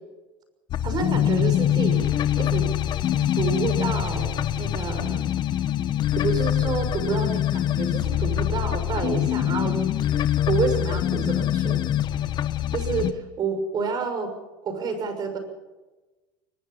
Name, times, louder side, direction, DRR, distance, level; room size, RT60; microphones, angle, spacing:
sound 1, 0.7-13.1, left 11 dB, 40° left, 1.3 m, -24 dB
voice 1, 0.8-2.8 3.4-5.3 6.1-9.8 10.5-11.8 12.7-14.3 14.6-15.4, right 4 dB, 35° right, 7 dB, 6.4 m, -29 dB
23.5 x 20.5 x 5.7 m, 1.2 s
supercardioid pair, 125°, 12 cm